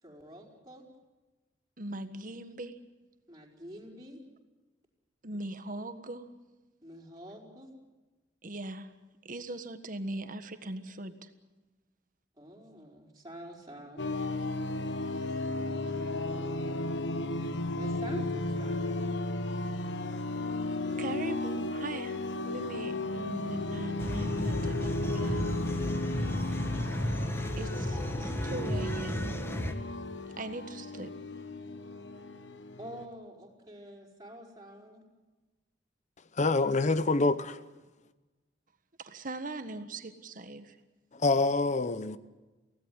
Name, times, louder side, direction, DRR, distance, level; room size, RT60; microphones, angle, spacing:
voice 1, 0.0-0.8 3.3-4.2 6.8-7.7 12.4-14.1 17.8-19.2 27.7-28.0 32.8-35.0, equal, 20° right, 4.9 m, -47 dB
voice 2, 1.8-2.8 5.2-6.3 8.4-8.9 9.2-11.3 21.0-25.6 27.6-29.4 30.4-31.1 39.0-40.8, right 2 dB, 50° right, 1.5 m, -40 dB
sound 1, 14.0-33.0, left 2 dB, 90° left, 1.2 m, -34 dB
sound 2, 24.0-29.7, equal, 15° left, 1.5 m, -34 dB
voice 3, 36.4-37.6 41.1-42.2, left 3 dB, 40° left, 0.8 m, -26 dB
24.0 x 17.0 x 9.5 m
head